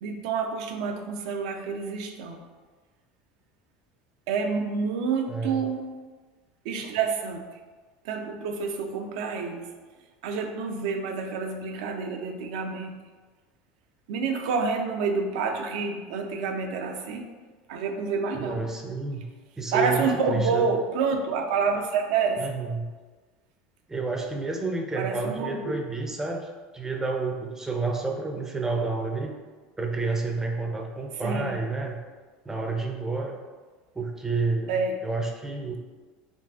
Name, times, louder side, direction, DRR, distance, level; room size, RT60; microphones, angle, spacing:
voice 1, 0.0-2.4 4.3-5.9 6.6-7.4 8.0-9.7 10.2-13.0 14.1-17.3 17.7-18.6 19.7-22.5 24.9-25.8 31.2-31.6 34.7-35.0, right 5 dB, 80° right, 4 dB, 0.4 m, -28 dB
voice 2, 5.3-5.6 18.3-19.2 19.6-20.7 22.4-22.9 23.9-29.3 29.8-32.0 32.5-33.4 34.0-35.8, right 3 dB, 10° right, 2 dB, 0.4 m, -30 dB
3.7 x 2.3 x 2.3 m, 1.4 s
supercardioid pair, 120°, 4 cm